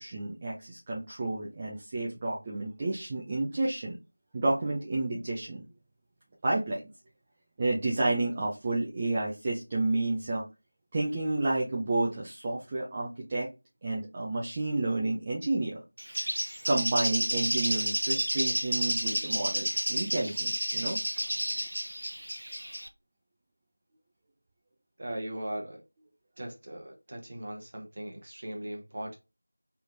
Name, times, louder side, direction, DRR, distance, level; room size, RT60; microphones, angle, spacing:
voice 1, 0.0-4.0 4.3-5.6 6.4-6.8 7.6-10.4 10.9-13.5 13.8-15.8 16.7-21.0, right 2 dB, 15° right, 0.4 m, -30 dB
Bird, 16.0-22.9, equal, 75° right, 0.6 m, -31 dB
voice 2, 25.0-25.8 26.4-29.2, right 1 dB, 30° right, 1.0 m, -38 dB
3.4 x 3.1 x 2.5 m
figure-of-eight pair, 175°, 0 cm